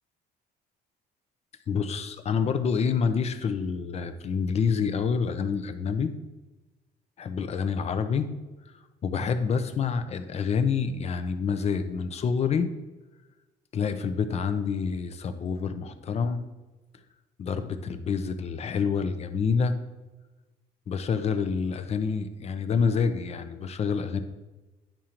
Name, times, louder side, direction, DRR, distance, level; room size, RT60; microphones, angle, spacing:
voice 1, 1.7-6.1 7.2-8.3 9.0-12.7 13.7-16.4 17.4-19.7 20.9-24.2, left 6 dB, 40° left, 9 dB, 0.6 m, -27 dB
10.0 x 3.8 x 2.9 m, 1.1 s
cardioid pair, 110°, 17 cm